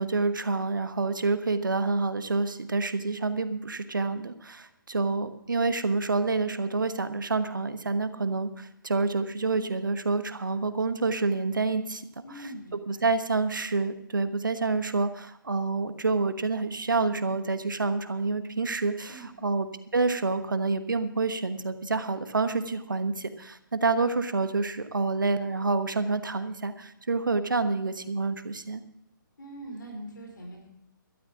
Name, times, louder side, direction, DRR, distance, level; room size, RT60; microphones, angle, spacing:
voice 1, 0.0-12.1 12.7-19.7 19.9-28.8, right 3 dB, 65° right, 11 dB, 1.2 m, -28 dB
voice 2, 12.2-13.2 19.1-19.7 29.4-30.7, right 1 dB, 65° left, 0 dB, 4.4 m, -43 dB
17.5 x 12.5 x 3.7 m, 0.80 s
figure-of-eight pair, 140°, 11 cm